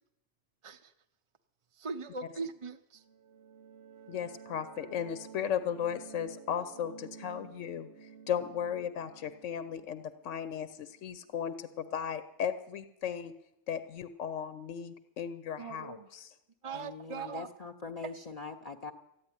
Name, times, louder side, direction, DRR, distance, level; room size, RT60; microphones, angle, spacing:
voice 1, 1.7-3.0 15.6-16.1 16.6-17.5, right 4 dB, 35° right, 6 dB, 0.5 m, -40 dB
sound 1, 2.9-11.5, right 7 dB, 60° right, 1.0 m, -52 dB
voice 2, 4.1-13.3 13.7-16.3, left 8 dB, 80° left, 12 dB, 1.1 m, -36 dB
voice 3, 16.7-18.9, left 4 dB, 35° left, 6 dB, 0.8 m, -42 dB
14.5 x 9.5 x 9.8 m, 0.87 s
omnidirectional pair, 1.3 m